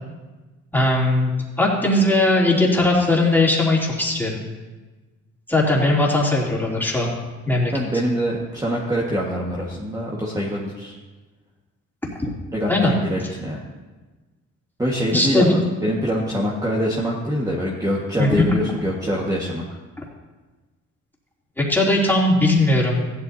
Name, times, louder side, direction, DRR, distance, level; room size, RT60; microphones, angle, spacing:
voice 1, 0.7-1.3 1.6-4.4 5.5-7.1 7.5-7.7 12.2-12.3 12.7-12.9 15.1-15.6 18.2-18.5 21.6-23.1, left 2 dB, 5° left, -4 dB, 3.1 m, -19 dB
voice 2, 7.7-10.9 12.5-13.6 14.8-19.6, equal, 10° right, -4 dB, 1.7 m, -24 dB
15.5 x 11.5 x 2.8 m, 1.2 s
cardioid pair, 90°, 30 cm